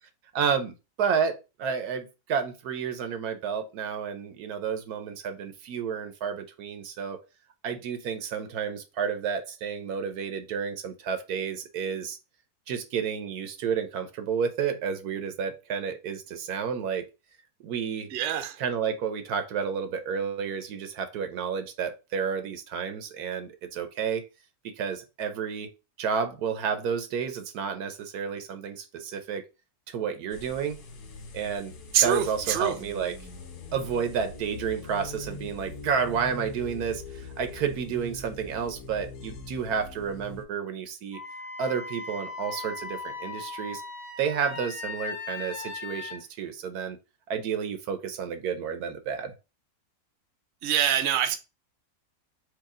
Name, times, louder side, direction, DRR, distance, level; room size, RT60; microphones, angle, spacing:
voice 1, 0.3-7.2 7.6-12.2 12.7-17.0 17.6-18.1 18.6-24.2 24.6-25.7 26.0-29.4 29.9-30.8 31.3-31.7 32.0-33.2 33.7-41.2 41.6-43.8 44.2-47.0 47.3-49.3, right 7 dB, 80° right, 1.2 m, -31 dB
voice 2, 18.1-18.6 31.9-32.7 50.6-51.4, right 9 dB, 55° right, 0.9 m, -25 dB
sound 1, 30.3-40.4, left 3 dB, 85° left, 1.5 m, -42 dB
Wind instrument woodwind instrument, 41.1-46.2, left 4 dB, 40° left, 1.5 m, -38 dB
4.7 x 2.7 x 3.7 m
omnidirectional pair, 1.6 m